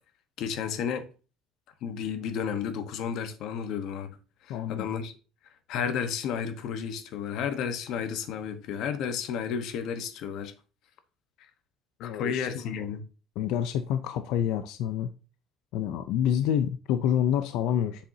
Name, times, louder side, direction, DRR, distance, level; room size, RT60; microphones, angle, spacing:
voice 1, 0.4-1.1 1.8-4.2 4.4-5.1 5.7-10.5 12.0-13.1, left 7 dB, 55° left, 1.1 m, -32 dB
voice 2, 4.5-4.9 12.0-12.7 13.4-15.1 15.7-18.0, left 9 dB, 70° left, 0.5 m, -28 dB
7.5 x 6.9 x 2.7 m
cardioid pair, 170°, 0 cm